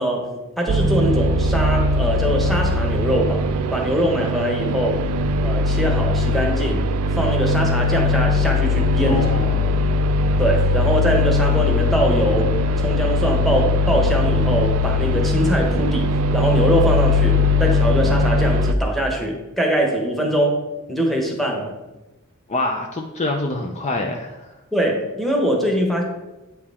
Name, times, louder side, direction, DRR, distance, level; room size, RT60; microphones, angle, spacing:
voice 1, 0.0-5.0 5.4-6.9 7.2-9.4 10.4-12.6 12.8-20.6 20.9-21.7 24.7-26.0, right 1 dB, ahead, 0 dB, 1.1 m, -22 dB
sound 1, 0.7-18.7, left 2 dB, 75° right, 0.4 m, -20 dB
voice 2, 9.1-9.9 22.5-24.6, left 2 dB, 30° left, 2 dB, 0.5 m, -26 dB
8.5 x 4.6 x 3.5 m, 1.0 s
head